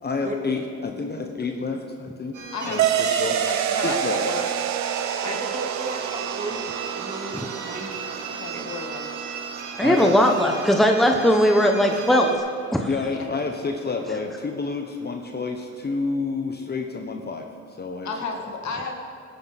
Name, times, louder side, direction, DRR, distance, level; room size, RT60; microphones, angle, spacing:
voice 1, 0.0-3.4 3.8-4.2 9.8-10.2 12.9-17.5 17.8-18.1, left 4 dB, 35° left, 3 dB, 1.2 m, -29 dB
sound 1, 2.3-12.4, right 5 dB, 90° right, 2.0 m, -36 dB
sound 2, 2.8-11.8, right 10 dB, 65° right, 0.7 m, -29 dB
voice 2, 3.2-4.4 5.2-5.4 8.3-9.0 13.1-13.2 18.0-18.9, left 4 dB, 70° left, 2 dB, 2.2 m, -32 dB
voice 3, 5.2-6.7 6.9-8.0 8.5-8.7, right 2 dB, 25° right, 2 dB, 2.1 m, -35 dB
voice 4, 9.8-12.4 12.7-12.9, equal, ahead, 2 dB, 1.1 m, -18 dB
18.0 x 11.0 x 4.3 m, 2.2 s
cardioid pair, 90°, 30 cm